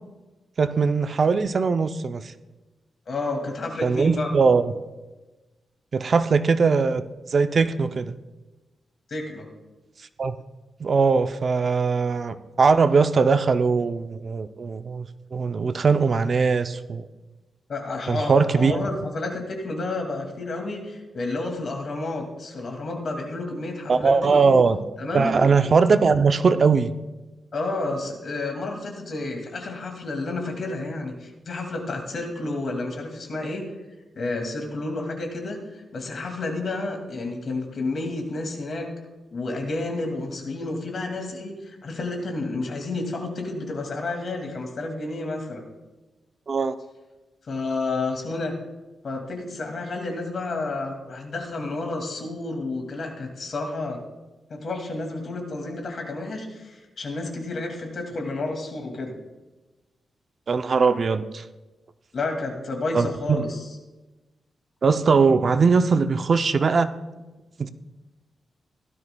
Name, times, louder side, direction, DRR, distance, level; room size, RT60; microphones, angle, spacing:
voice 1, 0.6-2.3 3.8-4.7 5.9-7.0 7.3-8.2 10.2-10.4 10.8-15.1 15.3-17.0 18.1-18.7 23.9-24.8 25.1-26.9 46.5-46.7 60.5-61.4 62.9-63.4 64.8-66.9 67.6-67.7, right 5 dB, 45° right, 10 dB, 0.5 m, -20 dB
voice 2, 3.1-4.3 9.1-9.5 17.7-24.6 25.0-25.3 25.6-25.7 27.5-33.7 34.2-38.9 39.3-45.6 47.4-48.5 49.0-54.0 54.5-59.2 62.1-63.7, left 2 dB, 50° left, 2 dB, 2.2 m, -30 dB
16.5 x 12.5 x 2.3 m, 1.1 s
wide cardioid pair, 145°, 0 cm